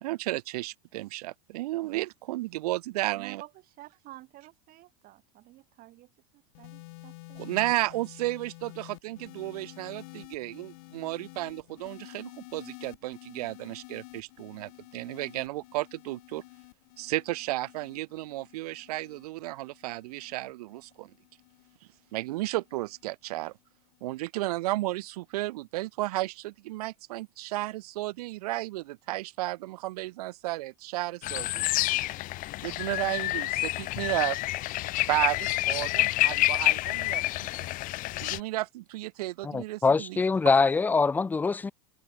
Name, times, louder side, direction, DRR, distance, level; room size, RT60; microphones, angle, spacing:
voice 1, 0.0-3.4 7.4-16.4 17.0-21.1 22.1-23.5 24.0-31.7 32.6-34.4 35.0-37.7 38.2-40.2, right 18 dB, 75° right, 0.6 m, -33 dB
voice 2, 3.1-7.5, right 17 dB, 45° right, 7.8 m, -51 dB
sound 1, 6.5-23.0 23.9-24.3, left 24 dB, 65° left, 2.4 m, -50 dB
sound 2, 31.2-38.4, left 18 dB, 45° left, 0.8 m, -28 dB
voice 3, 39.4-41.7, left 4 dB, 10° left, 0.3 m, -24 dB
hypercardioid pair, 110°, 20 cm